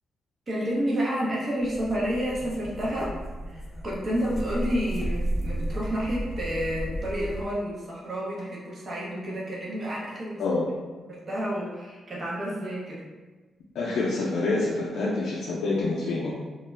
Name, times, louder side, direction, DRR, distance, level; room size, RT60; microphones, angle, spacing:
voice 1, 0.5-3.1 3.5-10.4 11.1-13.0, equal, 40° right, -5 dB, 0.7 m, -30 dB
sound 1, 1.6-7.6, right 1 dB, 5° left, 0.5 m, -33 dB
voice 2, 13.7-16.3, left 3 dB, 90° left, -6 dB, 0.3 m, -27 dB
2.3 x 2.1 x 3.1 m, 1.3 s
cardioid pair, 90°, 0 cm